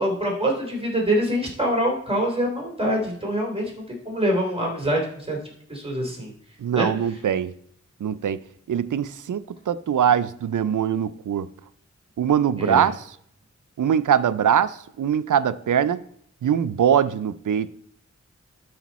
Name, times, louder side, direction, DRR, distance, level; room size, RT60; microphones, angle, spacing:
voice 1, 0.0-5.4 5.7-6.3 6.7-6.9 12.6-12.9, equal, 20° right, 3.5 m, -25 dB
voice 2, 6.6-7.5 8.0-8.4 8.7-11.5 12.2-13.0 13.8-16.0 16.4-17.7, right 8 dB, 85° right, 0.5 m, -22 dB
12.0 x 5.0 x 4.1 m
wide cardioid pair, 50°, 30 cm